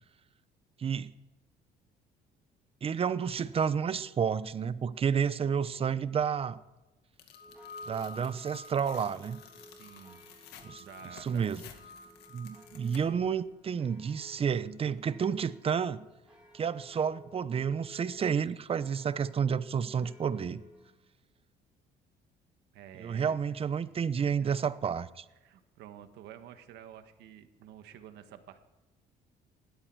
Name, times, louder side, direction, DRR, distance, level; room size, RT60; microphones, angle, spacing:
voice 1, 0.8-1.1 2.8-6.6 7.9-9.4 10.6-10.8 11.2-11.6 12.3-16.1 16.5-20.6 23.0-25.2, right 7 dB, 35° right, 0.7 m, -30 dB
Tearing, 7.2-13.3, left 9 dB, 85° left, 2.0 m, -54 dB
sound 1, 7.3-10.2 10.6-11.4 11.7-13.3, left 2 dB, 50° left, 1.3 m, -50 dB
sound 2, 7.4-20.9, right 1 dB, 5° right, 3.1 m, -57 dB
voice 2, 9.7-10.2 10.8-11.6 22.7-23.4 23.8-24.5 25.4-28.6, right 10 dB, 80° right, 1.5 m, -50 dB
20.0 x 13.0 x 4.7 m
cardioid pair, 110°, 17 cm